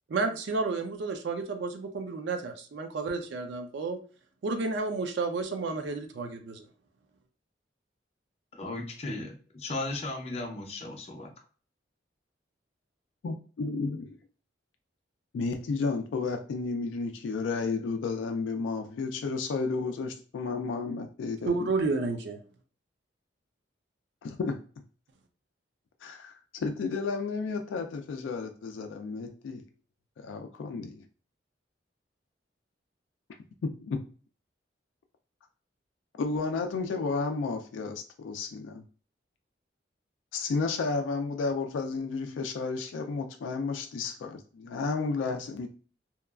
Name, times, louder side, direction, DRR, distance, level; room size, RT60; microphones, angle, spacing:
voice 1, 0.1-4.0 4.4-6.6 21.4-22.4, right 3 dB, 70° right, 6 dB, 0.4 m, -31 dB
voice 2, 8.5-11.3, left 2 dB, 35° left, 1 dB, 0.5 m, -36 dB
voice 3, 13.2-14.2 15.3-21.7 24.2-24.6 26.0-29.7 30.2-31.0 33.6-34.1 36.2-38.8 40.3-45.7, left 4 dB, 85° left, 5 dB, 0.3 m, -32 dB
2.9 x 2.3 x 2.3 m, 0.40 s
head